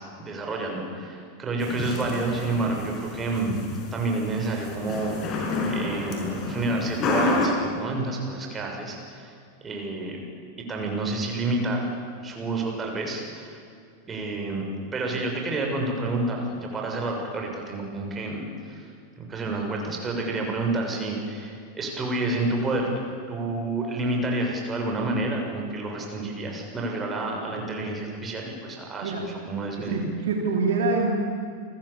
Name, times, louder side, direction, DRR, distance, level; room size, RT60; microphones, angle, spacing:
voice 1, 0.0-3.5 3.9-9.3 9.6-10.2 10.7-11.9 12.2-13.6 14.1-14.7 14.9-18.9 19.2-22.9 23.3-30.0, right 2 dB, 20° right, 1 dB, 6.8 m, -29 dB
sound 1, 1.6-7.5, left 3 dB, 35° left, 5.8 m, -30 dB
voice 2, 29.8-31.1, right 3 dB, 60° right, 1 dB, 3.6 m, -25 dB
29.5 x 23.0 x 7.3 m, 2.3 s
figure-of-eight pair, 90°, 0 cm